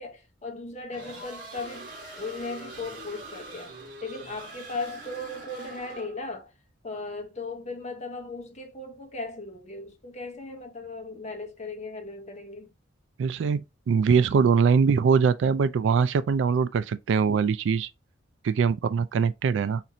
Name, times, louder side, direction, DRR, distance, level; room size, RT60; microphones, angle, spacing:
voice 1, 0.0-1.9 2.2-6.5 6.8-12.7, left 3 dB, 35° left, 0.7 m, -37 dB
sound 1, 0.9-6.3, right 2 dB, 50° right, 1.3 m, -43 dB
voice 2, 13.2-17.9 18.4-19.8, right 6 dB, 75° right, 0.3 m, -22 dB
4.2 x 2.5 x 2.7 m
head